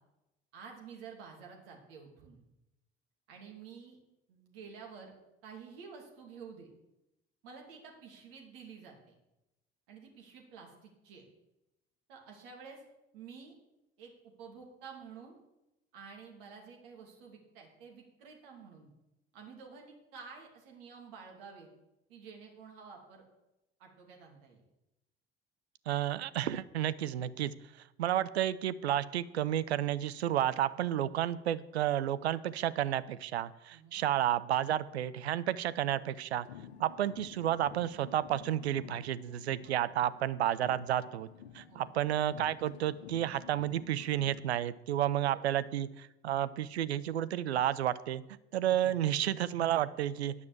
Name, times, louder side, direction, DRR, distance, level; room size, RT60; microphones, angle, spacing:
voice 1, 0.5-2.4 3.3-4.0 4.3-5.1 5.4-6.7 7.4-9.1 9.9-11.2 12.1-12.8 13.1-13.6 14.0-15.4 15.9-18.9 19.3-21.7 22.1-23.2 23.8-24.6 33.7-34.0 39.6-40.1 41.6-41.9 45.3-45.6 48.6-49.0, right 5 dB, 65° right, 0 dB, 2.7 m, -51 dB
voice 2, 25.9-27.5 28.0-36.5 36.8-41.3 41.5-48.2 48.5-50.3, right 11 dB, 85° right, 15 dB, 0.5 m, -31 dB
sound 1, 36.3-40.2 40.5-44.5, left 9 dB, 80° left, 0.9 m, -52 dB
9.7 x 6.1 x 7.3 m, 0.93 s
figure-of-eight pair, 60°, 31 cm